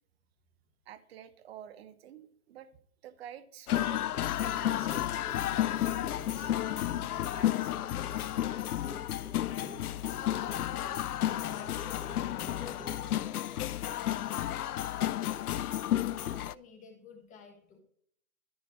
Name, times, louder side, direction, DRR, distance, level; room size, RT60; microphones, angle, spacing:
voice 1, 0.8-2.7 3.0-6.6 6.9-8.1, right 10 dB, 45° right, 12 dB, 1.1 m, -50 dB
sound 1, 3.7-16.5, left 12 dB, 80° left, 0.5 m, -32 dB
Clock, 4.1-13.2, right 1 dB, ahead, 0.7 m, -50 dB
voice 2, 11.3-14.5 14.9-17.8, left 5 dB, 15° left, 4 dB, 1.4 m, -51 dB
13.5 x 4.6 x 4.9 m, 0.64 s
hypercardioid pair, 135°, 44 cm